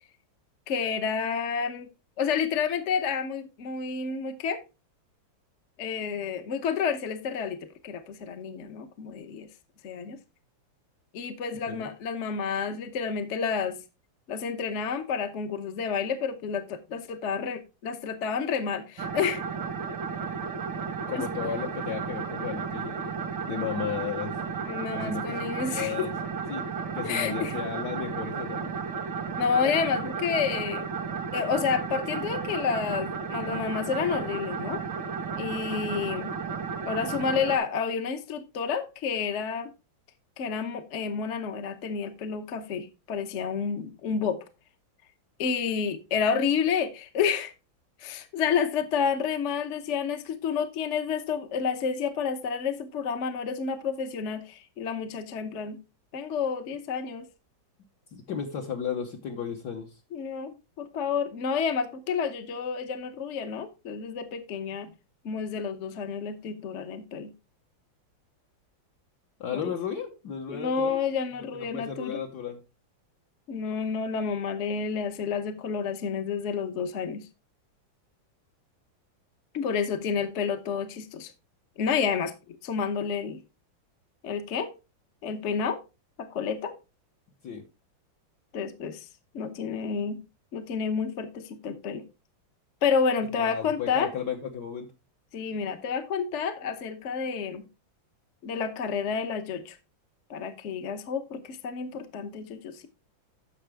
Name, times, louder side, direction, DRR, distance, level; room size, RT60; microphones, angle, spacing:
voice 1, 0.7-1.9 2.2-4.6 5.8-9.5 9.8-10.2 11.1-13.8 14.3-19.4 21.1-21.2 24.7-26.1 27.0-27.6 29.4-30.9 31.3-34.8 35.4-36.3 36.8-39.7 40.4-44.4 45.4-47.5 48.0-55.8 56.1-57.3 60.1-64.9 65.2-67.3 69.5-69.7 70.5-72.2 73.5-77.3 79.5-81.3 81.8-83.4 84.2-84.7 85.2-85.8 86.2-86.8 88.5-89.1 89.3-90.2 90.5-92.0 92.8-94.1 95.3-97.6 98.4-99.8 100.3-102.9, left 6 dB, 45° left, 1.0 m, -30 dB
sound 1, 19.0-37.6, right 5 dB, 80° right, 2.0 m, -33 dB
voice 2, 21.1-23.1 23.5-24.3 24.9-26.1 26.5-26.6 26.9-28.7 58.1-59.9 69.4-71.0 71.5-72.6 87.4-87.6 93.4-94.9, left 7 dB, 60° left, 1.5 m, -34 dB
9.9 x 6.7 x 3.4 m
omnidirectional pair, 2.1 m